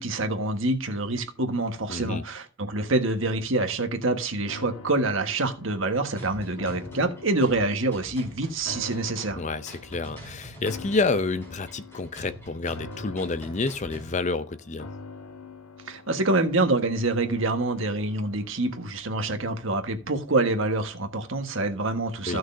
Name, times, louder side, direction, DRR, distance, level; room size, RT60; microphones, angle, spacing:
voice 1, 0.0-9.4 15.9-22.4, right 2 dB, 65° right, 1.4 m, -26 dB
voice 2, 1.9-2.2 9.4-14.9 22.3-22.4, left 3 dB, 35° left, 0.5 m, -29 dB
sound 1, 4.5-19.8 20.2-20.3, left 3 dB, 85° left, 1.3 m, -45 dB
sound 2, 6.2-14.2, equal, 10° left, 5.3 m, -45 dB
15.0 x 6.3 x 2.7 m
head